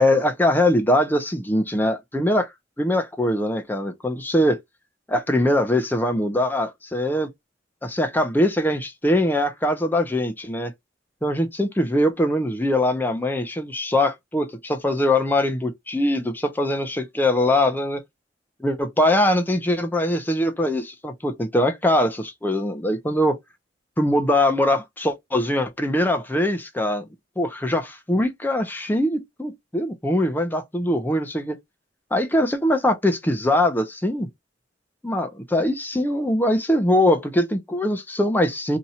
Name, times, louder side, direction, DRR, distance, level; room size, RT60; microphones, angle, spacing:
voice 1, 0.0-2.5 2.8-4.6 5.1-7.3 7.8-10.7 11.2-18.0 18.6-23.4 24.0-27.0 27.4-31.6 32.1-34.3 35.0-38.8, left 1 dB, 10° left, 0.6 m, -22 dB
2.8 x 2.5 x 4.2 m
head